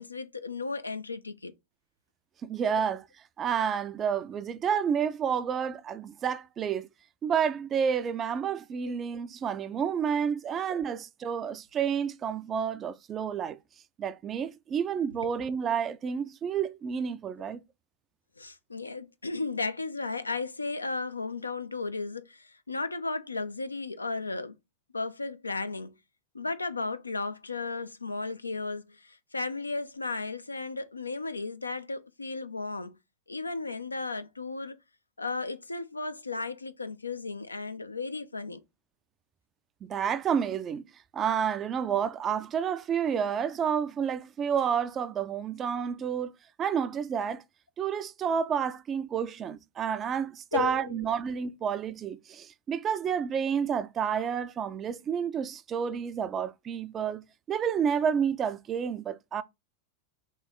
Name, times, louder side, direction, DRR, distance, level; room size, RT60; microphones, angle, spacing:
voice 1, 0.0-1.5 18.4-24.5 24.9-25.9 26.3-33.0 33.3-34.8 35.2-38.6 50.5-51.0, left 3 dB, 80° left, 0.4 m, -34 dB
voice 2, 2.4-3.0 3.4-6.9 7.2-13.6 14.0-17.6 39.8-40.8 41.1-46.3 46.6-47.4 47.8-59.4, right 7 dB, 25° right, 0.3 m, -30 dB
3.1 x 3.0 x 3.8 m
figure-of-eight pair, 90°, 0 cm